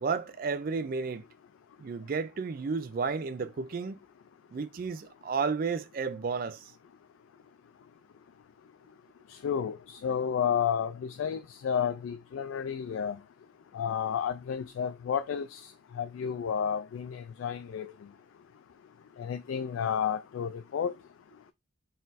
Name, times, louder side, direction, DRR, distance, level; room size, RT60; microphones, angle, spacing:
voice 1, 0.0-1.2 1.8-4.0 4.5-6.7, right 5 dB, 45° right, 0.3 m, -32 dB
voice 2, 9.4-13.2 13.7-15.7 16.0-17.9 19.2-20.9, left 7 dB, 75° left, 0.3 m, -31 dB
4.0 x 2.5 x 3.9 m
head